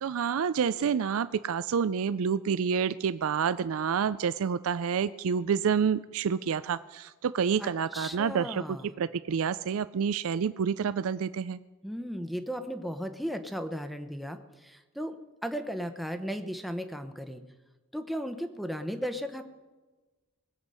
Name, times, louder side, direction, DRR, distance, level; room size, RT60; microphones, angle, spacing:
voice 1, 0.0-11.6, right 7 dB, 70° right, 14 dB, 0.4 m, -28 dB
voice 2, 7.6-8.9 11.8-15.2 15.4-17.4 17.9-19.4, equal, ahead, 7 dB, 0.8 m, -35 dB
20.5 x 8.1 x 5.5 m, 1.2 s
head